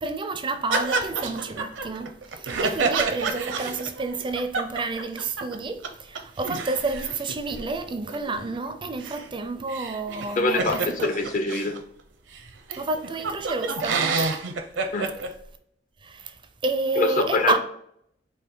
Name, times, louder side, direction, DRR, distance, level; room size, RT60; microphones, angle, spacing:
voice 1, 0.0-11.0 12.7-14.3 16.0-17.6, right 3 dB, 25° right, 0.4 m, -30 dB
sound 1, 0.7-5.5 5.8-5.9 6.1-11.8 12.3-12.4 12.7-15.3, right 4 dB, 70° right, 0.6 m, -29 dB
voice 2, 10.4-11.8 14.9-15.1 17.0-17.6, left 3 dB, 45° left, 0.6 m, -24 dB
5.0 x 2.5 x 3.8 m
head